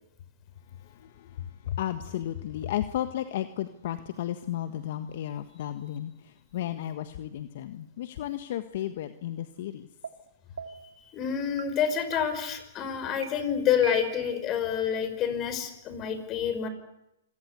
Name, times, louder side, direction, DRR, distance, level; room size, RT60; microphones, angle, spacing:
voice 1, 0.8-9.9, left 12 dB, 55° left, 10 dB, 1.5 m, -34 dB
sound 1, 10.0-10.1 10.6-11.0 11.6-11.7 12.1-12.6 13.2-13.3 13.8-14.4, right 7 dB, 80° right, 2.9 m, -40 dB
voice 2, 11.1-16.7, left 8 dB, 30° left, 10 dB, 5.4 m, -28 dB
27.5 x 22.5 x 8.3 m, 0.86 s
hypercardioid pair, 125°, 0 cm